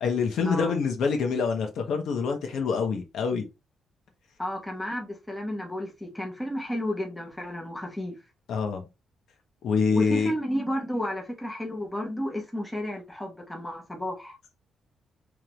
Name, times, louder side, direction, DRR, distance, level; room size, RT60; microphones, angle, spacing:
voice 1, 0.0-3.5 8.5-8.8 9.6-10.3, left 5 dB, 70° left, 1.1 m, -26 dB
voice 2, 4.4-8.2 9.9-14.4, equal, 5° left, 1.0 m, -32 dB
3.7 x 3.3 x 3.0 m
wide cardioid pair, 170°, 0 cm